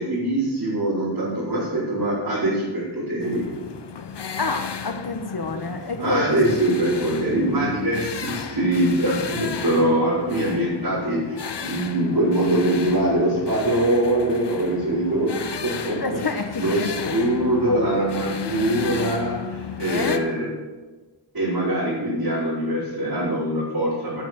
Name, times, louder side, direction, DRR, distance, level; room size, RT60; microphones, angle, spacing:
voice 1, 0.0-3.4 6.0-16.0 16.6-20.5 21.3-24.2, right 1 dB, 55° right, -11 dB, 5.1 m, -23 dB
sound 1, 3.2-20.2, left 7 dB, 80° left, 0.9 m, -34 dB
voice 2, 4.4-6.7 15.9-17.2 19.8-20.3, left 3 dB, 65° left, 6 dB, 1.3 m, -28 dB
10.0 x 9.1 x 7.1 m, 1.3 s
wide cardioid pair, 75°, 41 cm